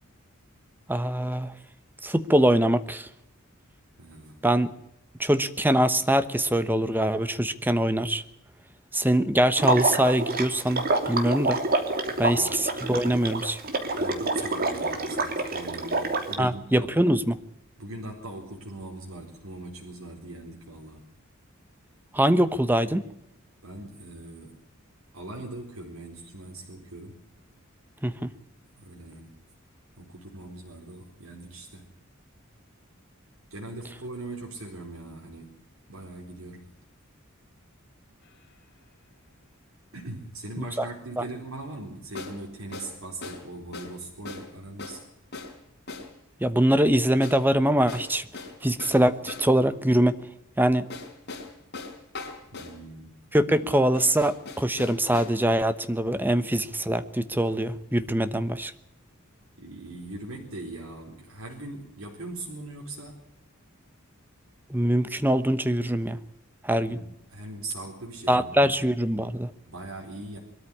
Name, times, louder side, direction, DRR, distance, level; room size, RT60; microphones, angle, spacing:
voice 1, 0.9-1.5 2.0-3.1 4.4-4.7 5.2-8.2 8.9-11.6 12.2-13.6 16.4-17.4 22.1-23.0 28.0-28.3 40.8-40.9 41.2-41.3 46.4-48.3 48.6-50.1 50.6-50.9 53.3-58.7 64.7-66.2 66.6-67.0 68.3-69.5, right 1 dB, 10° right, 12 dB, 1.1 m, -23 dB
voice 2, 4.0-4.5 12.0-12.6 14.0-16.9 17.8-21.0 23.6-24.6 25.1-27.2 28.8-29.3 30.0-31.9 33.5-35.6 35.9-36.7 39.9-45.0 52.5-53.2 56.2-56.3 59.6-63.2 66.9-68.7 69.7-70.4, right 2 dB, 80° right, -1 dB, 4.2 m, -40 dB
Water / Liquid, 9.6-16.4, right 2 dB, 45° right, 2.9 m, -27 dB
sound 1, 38.2-38.3 42.1-42.4 42.7-42.9 43.2-43.4 43.7-44.0 44.2-44.5 44.8-45.0 45.3-45.6 45.9-46.1 47.2-47.4 47.9-49.5 50.9-52.8 53.5-55.4, left 3 dB, 55° left, 4.6 m, -40 dB
22.5 x 13.5 x 9.9 m, 0.78 s
head